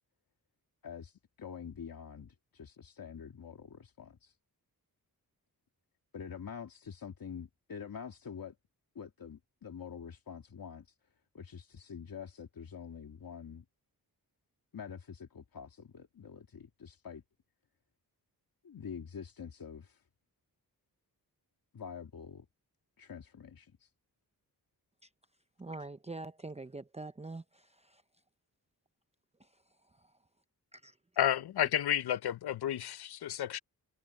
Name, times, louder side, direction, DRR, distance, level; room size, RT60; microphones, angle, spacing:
voice 1, 0.8-4.3 6.1-8.6 8.9-10.9 11.3-13.6 14.7-17.2 18.6-20.0 21.7-22.5 23.0-23.9, left 7 dB, 65° left, 2.5 m, -46 dB
voice 2, 25.6-28.0 29.4-30.1 30.7-31.0, right 2 dB, 15° right, 0.7 m, -45 dB
voice 3, 31.2-33.6, left 11 dB, 85° left, 0.7 m, -31 dB
cardioid pair, 80°, 38 cm